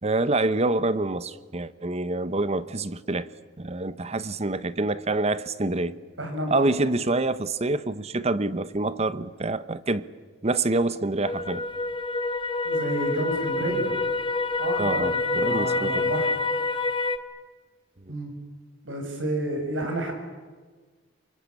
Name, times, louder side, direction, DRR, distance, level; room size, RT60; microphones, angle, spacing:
voice 1, 0.0-3.3 3.6-6.0 6.5-10.0 10.4-11.6 14.8-16.1, right 2 dB, 35° right, 1.0 m, -26 dB
voice 2, 6.2-6.7 12.6-13.9 14.6-16.3 18.1-18.3 18.8-20.1, right 1 dB, 85° right, 7.5 m, -30 dB
sound 1, 11.2-17.2, left 3 dB, 25° left, 1.4 m, -27 dB
28.0 x 24.0 x 8.7 m
head